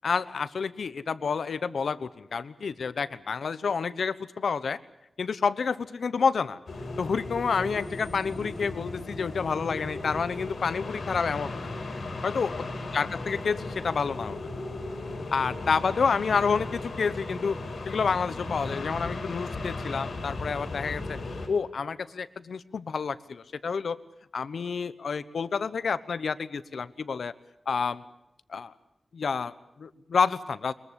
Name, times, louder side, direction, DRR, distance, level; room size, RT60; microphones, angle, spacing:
voice 1, 0.0-4.8 5.2-6.6 7.0-11.7 12.2-12.7 12.9-14.4 15.3-17.6 17.9-21.2 21.5-24.0 24.3-27.3 27.7-28.0 28.5-28.7 29.1-30.7, left 5 dB, 85° left, 15 dB, 1.0 m, -29 dB
sound 1, 6.7-21.5, left 2 dB, 70° left, 5.5 m, -36 dB
23.0 x 22.0 x 8.3 m, 0.82 s
wide cardioid pair, 125°, 0 cm